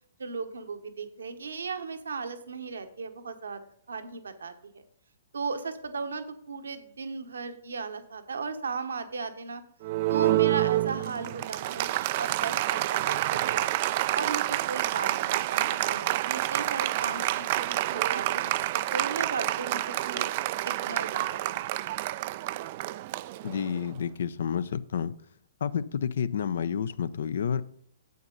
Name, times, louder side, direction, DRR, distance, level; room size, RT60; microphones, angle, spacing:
voice 1, 0.2-3.6 3.9-4.8 5.3-9.6 10.1-11.9 12.1-13.7 14.1-20.3 20.6-21.9, right 4 dB, 75° right, 8 dB, 1.1 m, -36 dB
Applause, 9.8-23.9, right 16 dB, 45° right, 0.3 m, -28 dB
voice 2, 23.4-25.1 25.6-27.6, left 7 dB, 65° left, 16 dB, 0.5 m, -30 dB
9.4 x 7.9 x 3.9 m, 0.65 s
figure-of-eight pair, 120°, 0 cm